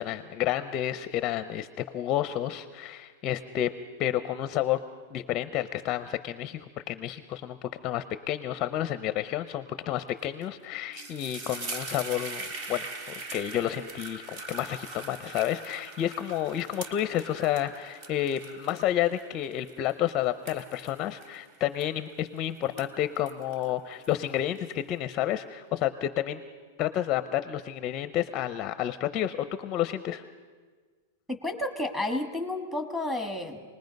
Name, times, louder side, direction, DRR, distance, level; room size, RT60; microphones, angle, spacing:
voice 1, 0.0-1.7 1.9-3.7 4.0-4.8 5.1-6.6 6.9-7.6 7.8-12.8 13.3-26.4 26.8-30.2, left 12 dB, 25° left, 11 dB, 0.6 m, -30 dB
sound 1, 10.2-10.4 10.7-22.3 22.6-24.6, right 3 dB, 40° right, 1.6 m, -42 dB
voice 2, 31.3-33.6, left 1 dB, 5° right, 4 dB, 1.6 m, -31 dB
27.5 x 20.0 x 5.3 m, 1.5 s
supercardioid pair, 160°, 0 cm